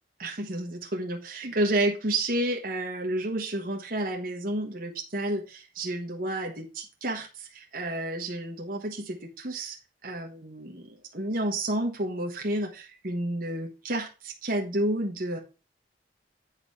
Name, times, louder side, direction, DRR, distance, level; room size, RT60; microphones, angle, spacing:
voice 1, 0.2-5.4 5.8-6.7 7.0-7.2 7.7-8.8 9.4-9.7 10.0-10.7 11.1-12.7 13.0-14.1 14.5-15.4, right 1 dB, 55° right, 1 dB, 1.3 m, -29 dB
8.5 x 4.0 x 5.6 m, 0.32 s
head